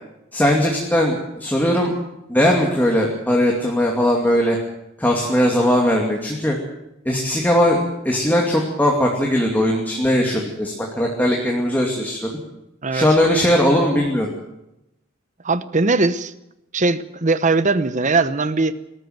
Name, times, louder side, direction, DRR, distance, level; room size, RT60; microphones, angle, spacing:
voice 1, 0.3-2.0 2.3-4.6 5.0-6.6 7.1-12.3 12.9-14.3, equal, 10° left, -1 dB, 2.6 m, -19 dB
voice 2, 15.4-16.3 16.7-18.7, right 3 dB, 40° right, 14 dB, 0.9 m, -20 dB
20.5 x 13.5 x 9.3 m, 0.91 s
head